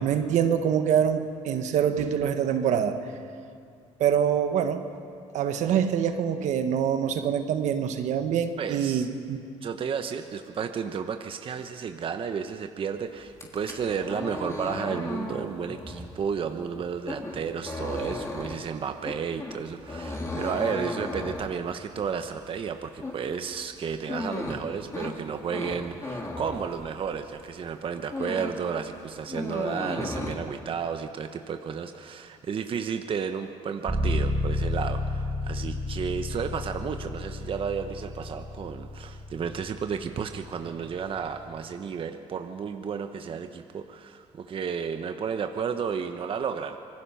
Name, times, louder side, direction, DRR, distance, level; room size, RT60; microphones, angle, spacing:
voice 1, 0.0-3.0 4.0-4.8 5.3-9.4, right 8 dB, 70° right, 8 dB, 1.4 m, -25 dB
voice 2, 8.6-9.1 9.6-46.8, right 6 dB, 45° right, 7 dB, 1.0 m, -32 dB
sound 1, 13.3-27.3 27.7-28.7 28.9-30.3, left 2 dB, 25° left, 3.5 m, -36 dB
sound 2, 33.9-41.6, left 1 dB, 15° right, 4.6 m, -32 dB
26.0 x 19.5 x 5.7 m, 2.3 s
cardioid pair, 95°, 13 cm